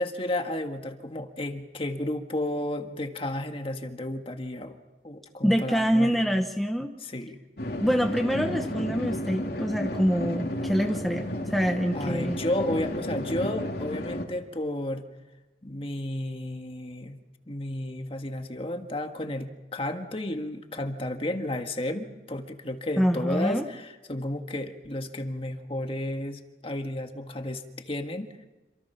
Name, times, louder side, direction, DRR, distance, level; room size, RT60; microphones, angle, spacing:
voice 1, 0.0-4.8 5.0-6.2 7.0-7.4 11.9-15.1 15.6-17.2 17.5-28.3, left 1 dB, 30° left, 5 dB, 1.7 m, -32 dB
voice 2, 5.4-6.9 7.8-12.4 23.0-23.7, equal, ahead, 4 dB, 0.9 m, -25 dB
sound 1, 7.6-14.2, left 1 dB, 55° left, 2.9 m, -32 dB
27.5 x 25.5 x 5.8 m, 1.1 s
head